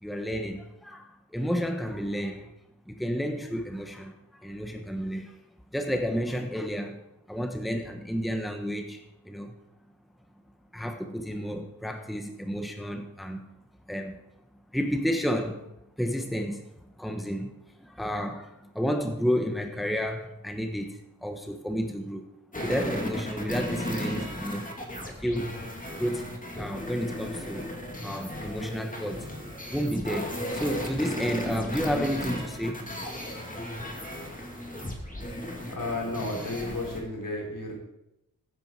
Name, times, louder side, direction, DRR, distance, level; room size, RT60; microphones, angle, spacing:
voice 1, 0.0-2.5 2.9-5.4 5.7-9.5 10.7-13.5 13.9-14.2 14.7-15.7 16.0-16.6 17.0-22.3 22.6-24.8 25.1-25.6 26.0-27.7 28.0-29.3 29.7-32.9 35.1-35.2, equal, ahead, 4 dB, 1.2 m, -31 dB
sound 1, 22.5-37.0, equal, 25° left, 2.6 m, -35 dB
voice 2, 35.7-37.8, left 2 dB, 65° left, -1 dB, 4.3 m, -33 dB
15.5 x 9.9 x 4.7 m, 0.86 s
wide cardioid pair, 90°, 35 cm